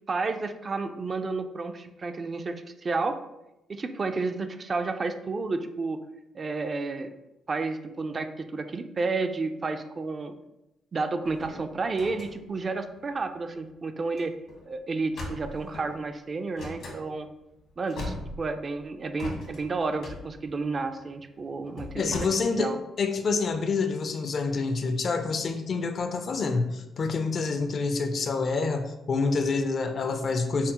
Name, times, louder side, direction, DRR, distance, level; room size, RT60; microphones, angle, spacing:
voice 1, 0.1-3.2 3.7-6.0 6.3-7.1 7.5-10.4 10.9-14.3 14.7-17.3 17.8-22.1 22.6-22.8, right 3 dB, 35° right, 7 dB, 0.3 m, -31 dB
sound 1, 11.2-13.6 14.1-14.2 14.5-14.6 15.1-16.0 16.5-17.0 17.5-17.6 17.8-18.8 19.2-22.2, left 2 dB, 75° left, 1.1 m, -40 dB
voice 2, 22.0-30.7, left 4 dB, 50° left, 7 dB, 0.4 m, -27 dB
5.6 x 2.0 x 2.8 m, 0.93 s
cardioid pair, 90°, 0 cm